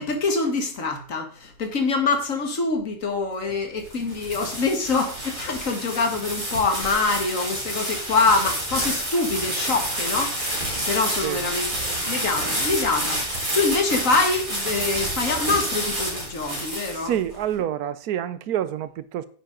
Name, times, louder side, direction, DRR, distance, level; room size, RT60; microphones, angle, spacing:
voice 1, 0.0-17.2, left 3 dB, 60° left, 2.0 m, -25 dB
sound 1, 3.6-17.4, right 1 dB, 30° right, 4.6 m, -29 dB
voice 2, 16.9-19.3, right 11 dB, 80° right, 1.2 m, -27 dB
10.0 x 7.9 x 3.8 m
omnidirectional pair, 1.6 m